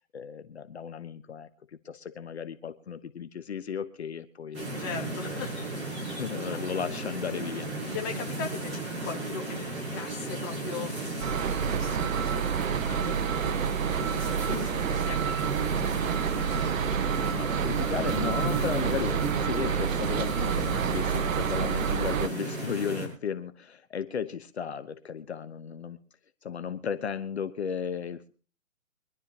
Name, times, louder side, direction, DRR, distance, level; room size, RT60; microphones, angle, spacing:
voice 1, 0.1-4.7 5.2-5.4 6.0-7.8 17.3-26.0 26.4-28.3, left 7 dB, 55° left, 11 dB, 1.1 m, -35 dB
sound 1, 4.5-23.1, right 2 dB, 15° right, 5.5 m, -34 dB
voice 2, 4.8-5.6 6.5-6.6 7.9-10.9 11.4-13.6 14.0-15.9, left 6 dB, 15° left, 2 dB, 1.5 m, -40 dB
sound 2, 11.2-22.3, right 8 dB, 80° right, 0.6 m, -29 dB
24.5 x 12.0 x 2.9 m, 0.37 s
hypercardioid pair, 165°, 40 cm